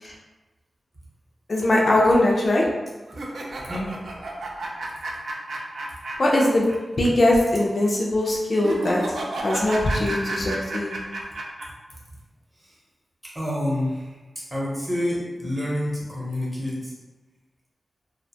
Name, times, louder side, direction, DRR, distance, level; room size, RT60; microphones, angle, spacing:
voice 1, 1.5-2.6 6.2-6.7 7.0-9.0 9.4-10.9, left 1 dB, 45° left, -3 dB, 0.3 m, -20 dB
sound 1, 3.1-6.8 7.0-7.1 8.6-11.7, right 2 dB, 80° right, 0.3 m, -32 dB
voice 2, 3.5-3.9 7.5-7.6 12.6-12.7 13.2-14.2 14.5-16.9, left 1 dB, 20° right, -6 dB, 0.7 m, -28 dB
2.4 x 2.1 x 2.7 m, 1.2 s
wide cardioid pair, 150°, 0 cm